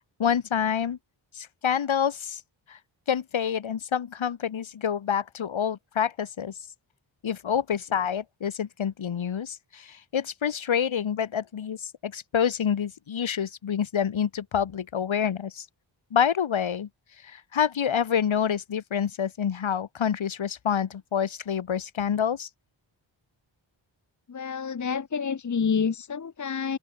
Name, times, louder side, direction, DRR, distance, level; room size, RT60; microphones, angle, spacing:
voice 1, 0.2-1.0 1.3-2.4 2.7-2.8 3.1-6.5 7.2-15.7 16.1-16.9 17.2-22.5, left 8 dB, 80° left, 6.1 m, -27 dB
voice 2, 24.3-26.8, left 6 dB, 40° left, 1.4 m, -28 dB
open air
wide cardioid pair, 140°, 46 cm